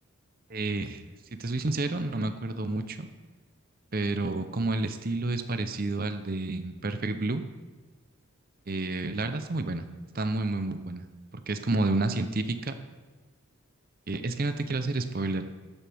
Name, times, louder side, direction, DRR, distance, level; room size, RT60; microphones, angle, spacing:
voice 1, 0.5-1.0 1.4-3.1 3.9-7.4 8.7-9.9 10.1-11.0 11.5-12.8 14.1-15.4, right 2 dB, 40° right, 9 dB, 0.7 m, -30 dB
13.5 x 11.5 x 3.5 m, 1.3 s
head